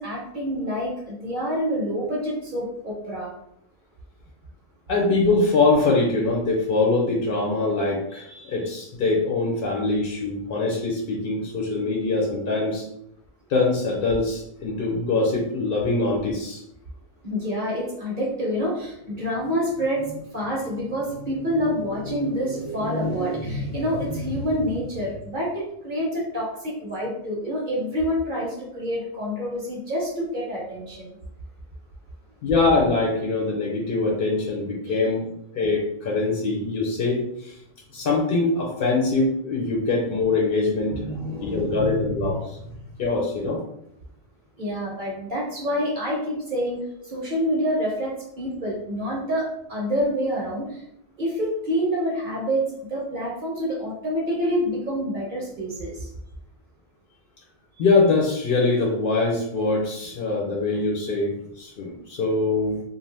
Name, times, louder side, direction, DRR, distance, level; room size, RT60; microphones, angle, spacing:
voice 1, 0.0-3.3 17.2-31.2 34.9-35.0 40.9-42.4 44.6-50.8 51.2-56.1, equal, 55° right, -4 dB, 0.8 m, -27 dB
voice 2, 4.9-12.8 13.5-16.6 32.4-35.2 35.5-37.5 37.9-40.9 41.4-42.6 43.0-43.6 57.8-62.8, left 3 dB, 65° left, -2 dB, 0.8 m, -23 dB
2.6 x 2.1 x 3.2 m, 0.77 s
omnidirectional pair, 1.0 m